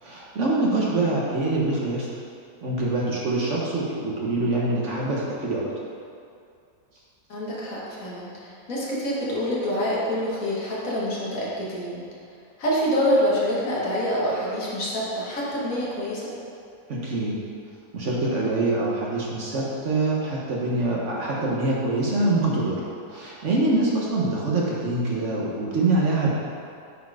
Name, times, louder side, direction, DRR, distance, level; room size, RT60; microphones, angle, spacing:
voice 1, 0.0-2.1 2.6-5.6 16.9-17.3 17.9-22.8 23.1-26.3, right 2 dB, 50° right, -4 dB, 1.3 m, -24 dB
voice 2, 7.3-12.0 12.6-16.3, equal, 60° left, -6 dB, 1.9 m, -26 dB
8.4 x 4.4 x 4.8 m, 2.3 s
omnidirectional pair, 1.7 m